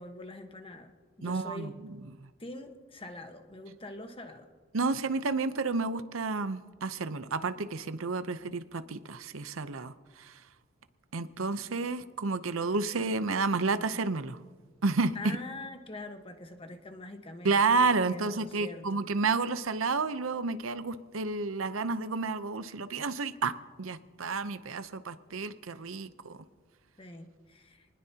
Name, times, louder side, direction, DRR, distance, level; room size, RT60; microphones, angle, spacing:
voice 1, 0.0-1.8 2.4-4.5 15.1-17.8 18.0-19.0 27.0-27.9, left 2 dB, 30° left, 6 dB, 1.3 m, -44 dB
voice 2, 1.2-2.0 4.7-9.9 10.2-10.3 11.1-14.4 14.8-15.2 17.4-23.5 23.8-26.4, right 4 dB, 85° right, 12 dB, 0.8 m, -30 dB
25.0 x 19.5 x 2.9 m, 1.4 s
head